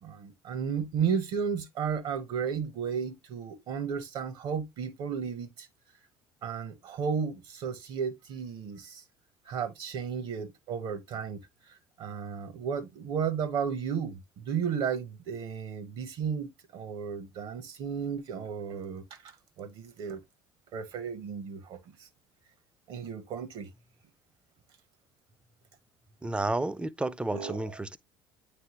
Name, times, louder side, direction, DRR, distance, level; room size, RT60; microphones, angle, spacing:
voice 1, 0.0-5.7 6.4-9.0 9.4-11.4 11.7-19.3 19.6-20.2 20.7-22.1 22.9-23.7 27.3-27.6, right 7 dB, 55° right, 1.0 m, -34 dB
voice 2, 26.2-28.0, right 2 dB, 10° right, 0.5 m, -31 dB
9.3 x 3.4 x 3.0 m
hypercardioid pair, 60°, 11 cm